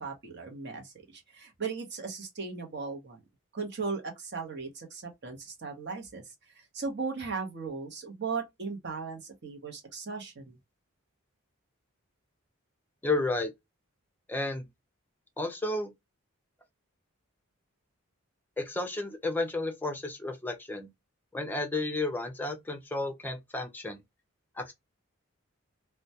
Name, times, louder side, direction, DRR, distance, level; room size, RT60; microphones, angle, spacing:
voice 1, 0.0-3.2 3.5-6.2 6.7-10.6, right 4 dB, 50° right, 0.7 m, -37 dB
voice 2, 13.0-13.5 14.3-14.7 15.4-15.9 18.6-20.9 21.3-24.0 24.6-24.7, left 2 dB, 10° left, 0.4 m, -32 dB
2.2 x 2.1 x 2.7 m
head